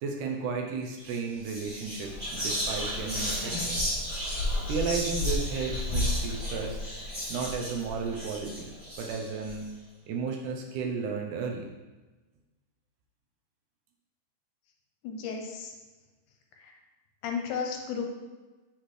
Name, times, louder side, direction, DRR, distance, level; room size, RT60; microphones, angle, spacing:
voice 1, 0.0-3.8 4.7-6.8 7.3-9.7 10.1-11.7, right 5 dB, 75° right, 2 dB, 2.0 m, -33 dB
Whispering, 1.0-1.2 1.4-9.5, left 1 dB, 25° right, 1.2 m, -32 dB
voice 2, 15.0-15.7 16.5-16.8 17.2-18.0, left 6 dB, 75° left, 2 dB, 2.1 m, -34 dB
7.6 x 4.2 x 3.2 m, 1.2 s
omnidirectional pair, 3.9 m